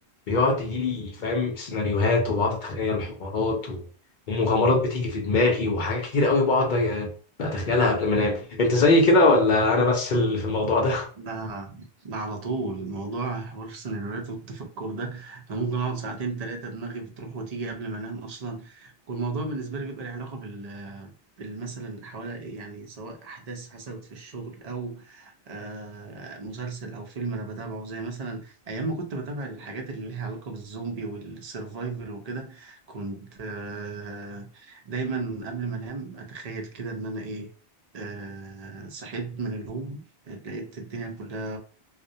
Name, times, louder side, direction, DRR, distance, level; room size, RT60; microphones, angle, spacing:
voice 1, 0.3-3.9 4.3-7.1 7.4-11.1, left 2 dB, 55° left, 0.6 m, -22 dB
voice 2, 9.6-9.9 11.2-37.5 37.9-41.6, right 3 dB, 50° right, 0.5 m, -34 dB
2.3 x 2.1 x 2.6 m
omnidirectional pair, 1.1 m